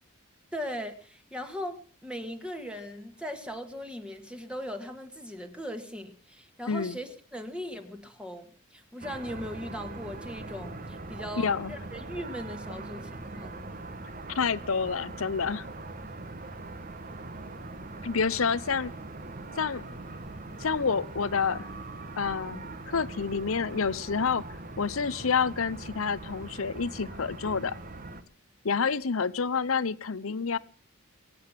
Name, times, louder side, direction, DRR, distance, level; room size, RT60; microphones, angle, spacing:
voice 1, 0.5-13.7, equal, 5° right, 6 dB, 1.7 m, -39 dB
voice 2, 6.7-7.0 11.4-11.7 14.3-15.7 18.0-18.9 19.6-19.8 20.6-21.7 22.2-27.7 28.6-30.6, left 5 dB, 85° left, 18 dB, 0.8 m, -28 dB
sound 1, 9.0-28.2, right 2 dB, 40° right, 1.4 m, -41 dB
23.5 x 8.7 x 5.9 m, 0.39 s
head